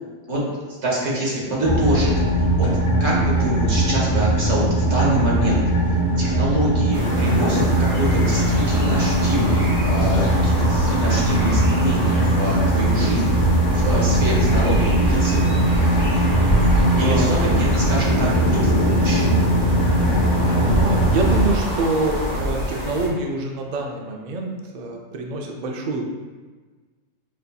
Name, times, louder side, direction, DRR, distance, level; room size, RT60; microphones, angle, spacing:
voice 1, 0.3-5.6 5.9-15.5 17.0-19.3, right 1 dB, 60° right, -5 dB, 1.4 m, -26 dB
sound 1, 1.6-21.4, right 1 dB, 65° left, 1.0 m, -20 dB
sound 2, 6.9-23.1, equal, 30° right, 1.2 m, -25 dB
sound 3, 10.2-22.4, equal, 5° right, 1.2 m, -33 dB
voice 2, 17.0-17.4 19.8-20.3 20.7-26.1, right 2 dB, 85° right, 1 dB, 0.4 m, -26 dB
6.3 x 2.7 x 2.2 m, 1.4 s
omnidirectional pair, 1.4 m